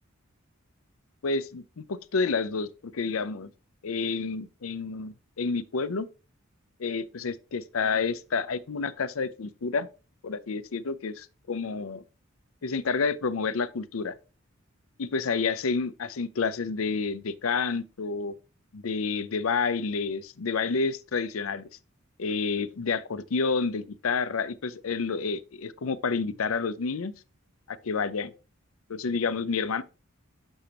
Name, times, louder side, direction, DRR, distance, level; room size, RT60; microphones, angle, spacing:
voice 1, 1.2-3.5 3.8-6.1 6.8-9.9 10.2-12.0 12.6-14.2 15.0-18.3 18.7-21.7 22.2-27.1 27.7-28.3 28.9-29.8, left 4 dB, 85° left, 0.6 m, -29 dB
6.8 x 6.3 x 2.9 m
head